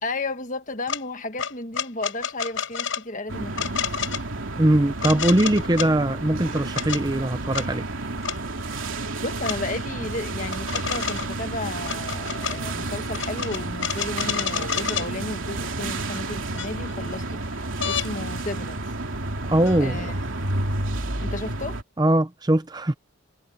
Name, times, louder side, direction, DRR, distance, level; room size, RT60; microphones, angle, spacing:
voice 1, 0.0-3.7 9.2-18.8 19.8-20.1 21.2-21.8, left 2 dB, 40° left, 1.5 m, -33 dB
sound 1, 0.9-1.0 1.4-3.0 3.6-4.2 5.0-5.9 6.5-7.0 7.5-7.7 8.2-8.4 9.4-9.6 10.5-11.4 11.8-12.6 13.1-15.1 16.1-16.2 16.6-17.1 17.8-18.1 19.7-19.8, left 8 dB, 70° left, 5.2 m, -29 dB
sound 2, 3.3-21.8, right 2 dB, 75° right, 2.8 m, -31 dB
voice 2, 4.5-7.9 19.5-20.0 22.0-22.9, right 1 dB, 20° right, 0.7 m, -21 dB
head